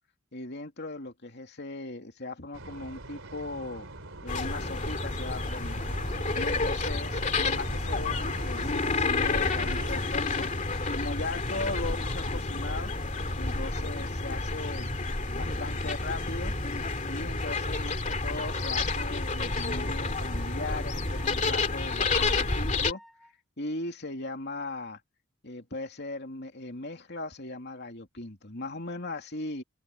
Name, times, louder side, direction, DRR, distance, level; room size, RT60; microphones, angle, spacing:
voice 1, 0.3-3.9 4.2-5.8 6.4-10.5 10.9-12.9 13.4-14.9 15.3-16.5 17.1-23.0 23.6-25.0 25.4-29.6, left 2 dB, 50° left, 2.9 m, -38 dB
sound 1, 2.5-9.9, right 2 dB, 65° right, 3.6 m, -43 dB
sound 2, 4.3-22.9, left 3 dB, 35° left, 2.4 m, -30 dB
Wind instrument woodwind instrument, 18.4-23.3, equal, ahead, 2.4 m, -53 dB
open air
head